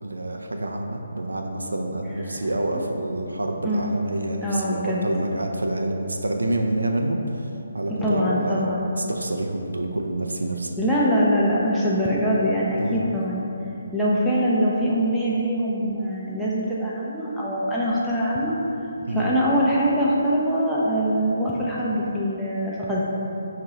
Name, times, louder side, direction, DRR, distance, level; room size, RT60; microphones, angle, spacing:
voice 1, 0.0-7.2 7.7-8.7 9.0-10.7 12.8-13.0 19.0-19.3, right 1 dB, 70° right, 2 dB, 0.4 m, -27 dB
voice 2, 4.4-5.1 7.9-8.9 10.8-13.4 13.9-18.5 19.1-23.2, equal, ahead, -9 dB, 0.4 m, -23 dB
5.3 x 2.4 x 2.9 m, 2.9 s
figure-of-eight pair, 140°, 0 cm